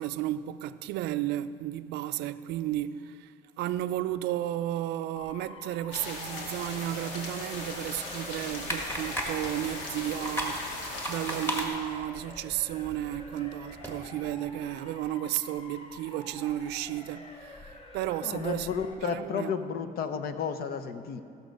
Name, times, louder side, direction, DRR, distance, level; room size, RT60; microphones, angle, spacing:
voice 1, 0.0-18.7 19.0-19.5, right 13 dB, 85° right, 0.4 m, -33 dB
Motor vehicle (road) / Siren, 5.2-18.9, left 2 dB, 35° left, 1.2 m, -48 dB
sound 1, 5.9-11.7, left 2 dB, 85° left, 2.0 m, -39 dB
sound 2, 8.5-13.9, equal, 15° left, 1.8 m, -37 dB
voice 2, 18.2-21.2, left 6 dB, 65° left, 0.8 m, -32 dB
15.5 x 6.6 x 5.2 m
cardioid pair, 110°, 17 cm